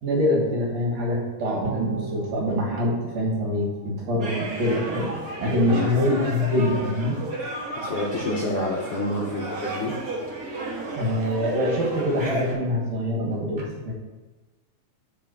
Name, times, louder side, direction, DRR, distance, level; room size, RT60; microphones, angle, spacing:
voice 1, 0.0-5.1 5.4-7.2 11.0-13.9, left 1 dB, 65° right, -2 dB, 2.4 m, -24 dB
sound 1, 1.6-5.0 5.3-5.4, right 5 dB, 80° right, 1.6 m, -38 dB
sound 2, 4.2-12.5, right 2 dB, 35° right, 1.6 m, -33 dB
voice 2, 7.8-9.9, left 2 dB, 70° left, -3 dB, 1.4 m, -28 dB
5.5 x 4.8 x 6.0 m, 1.2 s
omnidirectional pair, 3.5 m